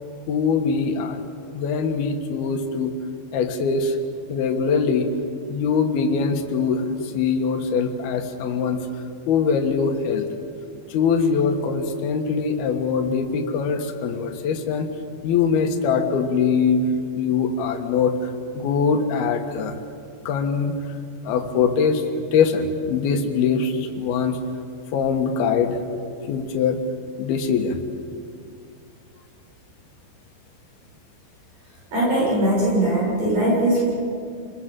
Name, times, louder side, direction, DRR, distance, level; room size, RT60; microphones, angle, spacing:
voice 1, 0.3-1.2 1.5-2.9 3.3-4.0 4.3-5.1 5.5-8.8 9.3-10.3 10.9-14.9 15.2-16.9 17.1-18.1 18.5-19.8 20.3-20.8 21.2-22.0 22.3-24.4 24.9-25.8 26.3-26.8 27.2-27.8, left 5 dB, 80° left, 4 dB, 3.4 m, -22 dB
voice 2, 31.9-33.8, right 1 dB, 55° right, -6 dB, 8.8 m, -20 dB
27.5 x 21.0 x 7.5 m, 2.3 s
omnidirectional pair, 4.4 m